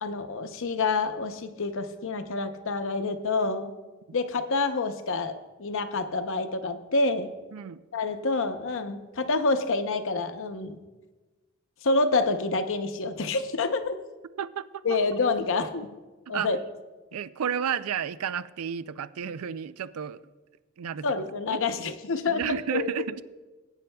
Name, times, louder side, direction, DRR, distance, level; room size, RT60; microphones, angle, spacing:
voice 1, 0.0-3.7 4.1-5.3 5.6-7.3 7.9-10.8 11.8-14.0 14.8-15.9 16.3-16.6 21.0-23.1, left 3 dB, 65° left, 8 dB, 0.7 m, -27 dB
voice 2, 7.5-7.8 14.4-14.8 16.3-16.5 17.1-20.2 20.8-21.1 21.5-21.9 22.3-23.2, right 8 dB, 85° right, 15 dB, 0.4 m, -32 dB
20.0 x 9.1 x 2.3 m, 1.2 s
head